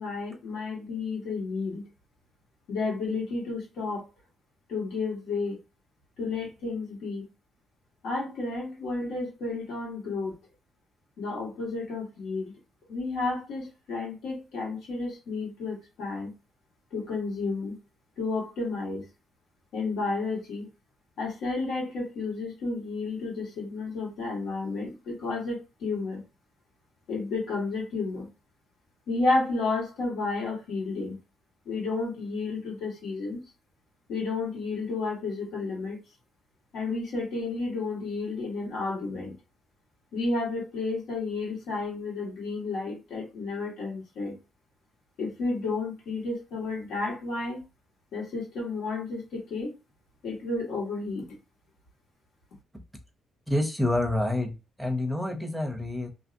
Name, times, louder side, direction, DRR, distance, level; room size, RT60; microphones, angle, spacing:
voice 1, 0.0-1.9 2.7-4.1 4.7-5.6 6.2-7.3 8.0-10.4 11.2-12.5 12.9-16.3 16.9-17.8 18.2-19.1 19.7-20.7 21.2-26.2 27.1-28.3 29.1-31.2 31.6-33.4 34.1-36.0 36.7-39.3 40.1-44.3 45.2-47.6 48.1-49.7 50.2-51.4, left 3 dB, 90° left, 1.6 m, -31 dB
voice 2, 53.5-56.1, left 1 dB, ahead, 0.6 m, -28 dB
2.8 x 2.6 x 2.5 m
cardioid pair, 170°, 0 cm